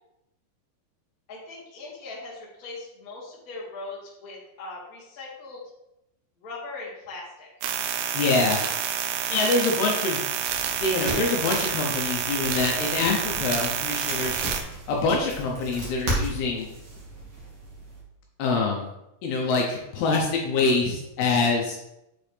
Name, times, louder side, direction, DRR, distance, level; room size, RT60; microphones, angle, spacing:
voice 1, 1.3-5.6 6.4-7.5 9.7-10.1, left 3 dB, 35° left, -7 dB, 1.4 m, -40 dB
sound 1, 7.6-14.6, right 8 dB, 80° right, 2.6 m, -28 dB
voice 2, 8.1-8.6 9.3-10.2 10.5-14.4 14.9-16.7 18.4-18.9 19.2-21.8, left 3 dB, 75° left, -1 dB, 2.6 m, -25 dB
sound 2, 10.5-18.0, right 1 dB, 65° right, 1.0 m, -35 dB
7.6 x 4.5 x 3.4 m, 0.87 s
omnidirectional pair, 5.0 m